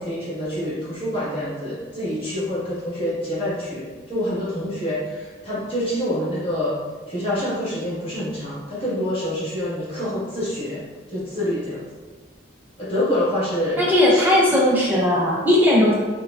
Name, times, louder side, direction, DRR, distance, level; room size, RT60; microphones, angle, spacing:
voice 1, 0.0-6.7 7.1-10.8 11.1-11.8 12.8-13.8 14.1-14.2, equal, 30° left, -11 dB, 1.3 m, -26 dB
voice 2, 13.8-16.0, left 1 dB, 10° right, -5 dB, 0.5 m, -17 dB
4.7 x 2.2 x 2.3 m, 1.4 s
head